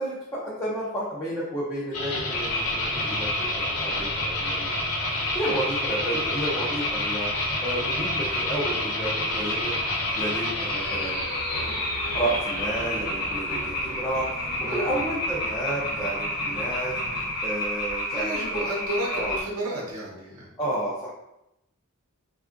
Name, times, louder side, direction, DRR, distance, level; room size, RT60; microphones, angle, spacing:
voice 1, 0.0-4.8 5.3-9.7 10.2-11.2 12.1-18.6 19.1-19.4 20.6-21.1, right 1 dB, 15° left, -7 dB, 0.4 m, -31 dB
sound 1, 1.9-17.5, left 2 dB, 85° left, 0.8 m, -32 dB
sound 2, 2.3-19.4, left 1 dB, 50° left, 1.0 m, -30 dB
voice 2, 18.1-20.5, right 1 dB, 75° right, -3 dB, 0.8 m, -32 dB
3.5 x 2.3 x 2.5 m, 0.89 s
head